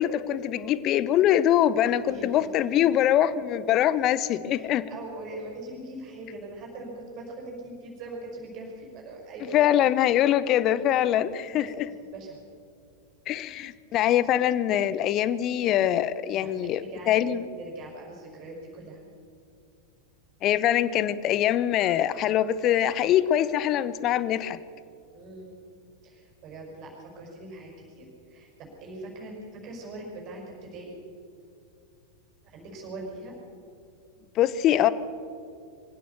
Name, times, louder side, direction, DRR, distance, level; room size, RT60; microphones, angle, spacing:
voice 1, 0.0-4.8 9.5-11.9 13.3-17.5 20.4-24.6 34.4-34.9, left 11 dB, 35° left, 16 dB, 0.8 m, -23 dB
voice 2, 2.0-2.5 2.7-3.0 4.5-9.7 11.5-12.4 16.4-19.0 25.1-25.6 26.0-31.0 32.4-33.4, right 2 dB, 35° right, -1 dB, 5.7 m, -41 dB
23.0 x 15.5 x 7.1 m, 2.5 s
figure-of-eight pair, 90°, 0 cm